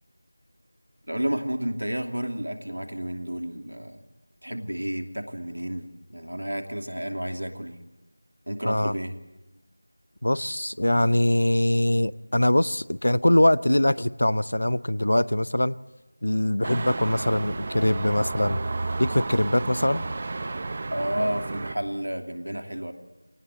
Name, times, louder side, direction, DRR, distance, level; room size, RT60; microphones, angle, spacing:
voice 1, 1.1-4.0 4.4-7.8 8.5-9.1 20.9-22.9, equal, 80° right, 5 dB, 2.9 m, -31 dB
voice 2, 10.2-15.7 16.2-18.6 19.0-20.1, left 1 dB, 70° left, 19 dB, 0.7 m, -22 dB
sound 1, 16.6-21.7, right 3 dB, 30° right, 0.9 m, -32 dB
24.0 x 19.0 x 7.8 m, 1.0 s
figure-of-eight pair, 170°, 0 cm